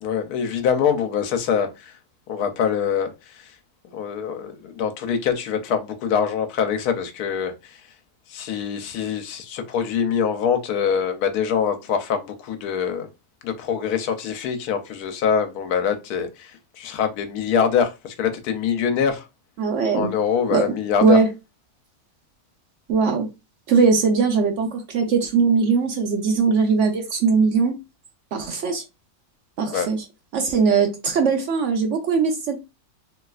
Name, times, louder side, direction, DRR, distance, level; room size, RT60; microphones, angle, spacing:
voice 1, 0.0-1.9 2.3-3.1 3.4-3.5 3.9-7.8 8.3-13.1 13.4-16.5 16.8-19.2 19.9-21.2 29.7-29.9, left 7 dB, 80° left, 1.1 m, -24 dB
voice 2, 19.6-20.1 20.5-20.7 21.0-21.3 22.9-23.3 23.7-27.7 28.3-28.8 29.6-30.0 30.3-32.6, right 5 dB, 65° right, 0.8 m, -20 dB
3.1 x 2.9 x 2.3 m
omnidirectional pair, 1.6 m